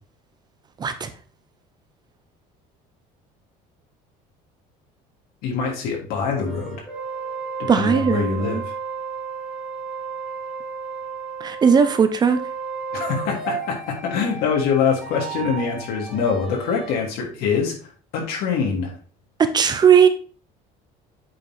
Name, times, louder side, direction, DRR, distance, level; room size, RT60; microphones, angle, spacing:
voice 1, 0.8-1.1 7.7-8.6 11.4-12.4 19.4-20.1, right 7 dB, 25° right, 0.8 m, -17 dB
voice 2, 5.4-6.8 7.6-8.7 12.9-19.0, left 6 dB, 70° left, 3.2 m, -24 dB
sound 1, 6.5-17.0, right 5 dB, 5° right, 2.4 m, -33 dB
8.4 x 4.5 x 4.4 m
cardioid pair, 145°, 16 cm